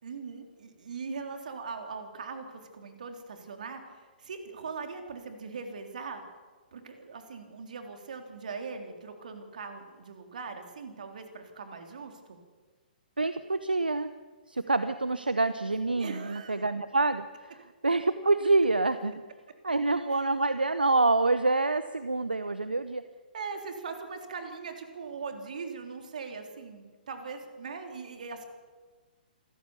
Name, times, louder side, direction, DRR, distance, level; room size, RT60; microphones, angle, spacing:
voice 1, 0.0-6.2 6.7-12.4 16.0-16.6 20.1-20.2 23.3-28.4, right 5 dB, 55° right, 5 dB, 3.6 m, -40 dB
voice 2, 13.2-14.1 14.5-19.2 19.6-23.0, right 3 dB, 80° right, 12 dB, 0.9 m, -27 dB
27.0 x 14.0 x 7.0 m, 1.4 s
figure-of-eight pair, 125°, 5 cm